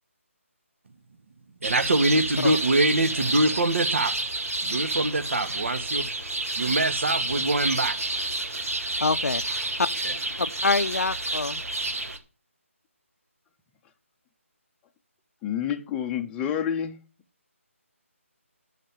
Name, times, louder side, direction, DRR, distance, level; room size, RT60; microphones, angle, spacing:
voice 1, 1.6-4.1 4.6-6.1 6.6-8.0 10.0-10.2, right 2 dB, 55° right, 1.7 m, -24 dB
sound 1, 1.6-12.2, right 2 dB, 85° right, 2.1 m, -29 dB
voice 2, 9.0-9.9 10.4-11.6, left 3 dB, 80° left, 0.6 m, -26 dB
voice 3, 15.4-17.0, left 9 dB, 10° left, 0.8 m, -28 dB
10.0 x 6.6 x 7.3 m
figure-of-eight pair, 160°, 8 cm